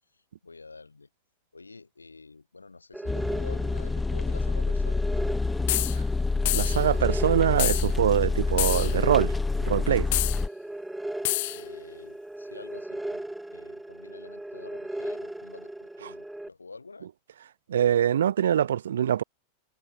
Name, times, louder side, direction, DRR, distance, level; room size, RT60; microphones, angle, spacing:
voice 1, 0.4-1.1 1.5-5.0 11.5-13.2 13.5-17.1, left 3 dB, 80° left, 6.6 m, -47 dB
sound 1, 2.9-16.5, right 1 dB, 5° right, 2.5 m, -38 dB
sound 2, 3.1-10.5, left 3 dB, 10° left, 0.8 m, -27 dB
sound 3, 5.7-6.0 6.5-6.8 7.6-7.9 8.6-9.0 10.1-10.4 11.2-11.6, left 20 dB, 50° left, 0.5 m, -27 dB
voice 2, 6.5-9.3 9.7-10.1 17.7-19.2, right 9 dB, 65° right, 0.3 m, -24 dB
figure-of-eight pair, 90°, 0 cm